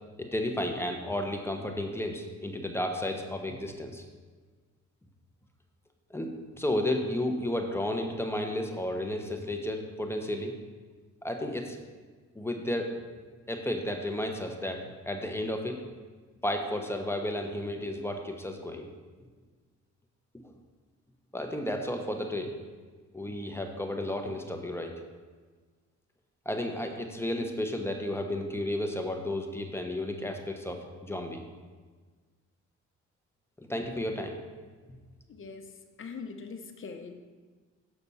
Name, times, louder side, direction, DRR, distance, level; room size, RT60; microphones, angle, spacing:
voice 1, 0.2-4.0 6.1-10.5 11.2-11.8 12.3-12.9 13.5-15.8 16.4-18.9 21.3-22.5 23.1-24.9 26.4-31.4 33.6-34.4, left 1 dB, 10° left, 3 dB, 1.0 m, -32 dB
voice 2, 35.3-35.7 36.0-37.1, left 5 dB, 45° left, 6 dB, 1.0 m, -42 dB
7.0 x 5.9 x 5.6 m, 1.4 s
cardioid pair, 90°, 30 cm